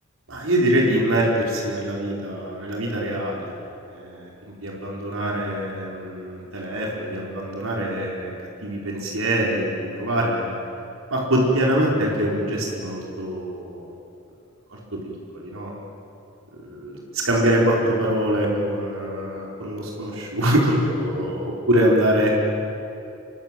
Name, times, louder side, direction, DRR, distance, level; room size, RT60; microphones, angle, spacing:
voice 1, 0.3-3.5 3.9-10.5 11.1-13.9 14.9-15.7 16.6-22.4, right 1 dB, 85° right, -3 dB, 4.9 m, -24 dB
27.5 x 23.0 x 9.2 m, 2.7 s
head